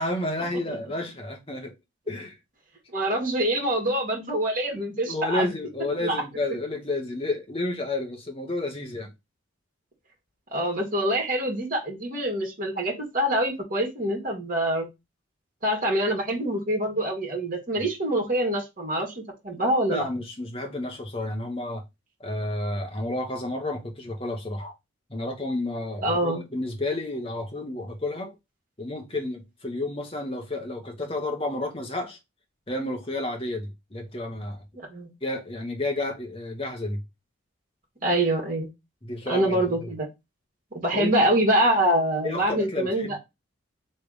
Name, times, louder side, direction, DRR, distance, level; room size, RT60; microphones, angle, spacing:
voice 1, 0.0-1.7 2.1-2.4 5.1-9.1 19.9-21.8 22.2-24.7 25.1-28.3 28.8-32.2 32.7-34.6 35.2-37.0 39.0-39.9 40.9-41.3 42.2-43.2, left 2 dB, 30° left, 1.1 m, -31 dB
voice 2, 2.9-5.5 6.0-6.2 10.5-14.9 15.6-20.1 26.0-26.4 34.9-35.1 38.0-38.7 39.3-40.1 40.7-43.2, right 1 dB, 40° right, 1.9 m, -25 dB
3.4 x 3.2 x 4.9 m
head